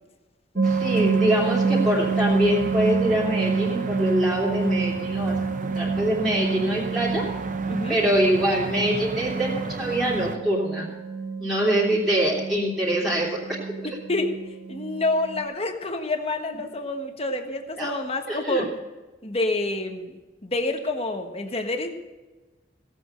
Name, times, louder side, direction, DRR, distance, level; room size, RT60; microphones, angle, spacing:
voice 1, 0.5-7.2 7.9-10.9 11.4-13.6 17.8-17.9 18.3-18.6, equal, ahead, -7 dB, 3.0 m, -24 dB
sound 1, 0.5-15.4, right 4 dB, 65° right, 1.2 m, -28 dB
sound 2, 0.6-10.4, right 2 dB, 45° right, 0.9 m, -36 dB
voice 2, 13.8-14.3 14.7-18.7 19.2-21.9, left 2 dB, 35° left, 5 dB, 1.4 m, -28 dB
16.5 x 8.2 x 6.6 m, 1.2 s
head